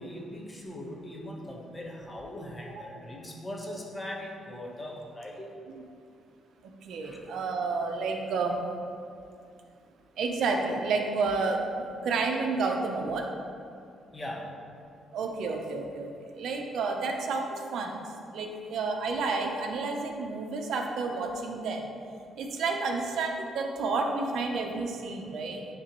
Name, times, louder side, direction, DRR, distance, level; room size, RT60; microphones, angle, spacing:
voice 1, 0.0-5.5 7.0-7.2 14.1-14.5, left 1 dB, 20° left, -2 dB, 1.2 m, -40 dB
voice 2, 6.6-8.6 10.2-11.7 12.0-13.3 15.1-21.9 22.4-25.7, right 4 dB, 75° right, 2 dB, 0.7 m, -30 dB
10.0 x 3.4 x 3.1 m, 2.4 s
cardioid pair, 90°, 0 cm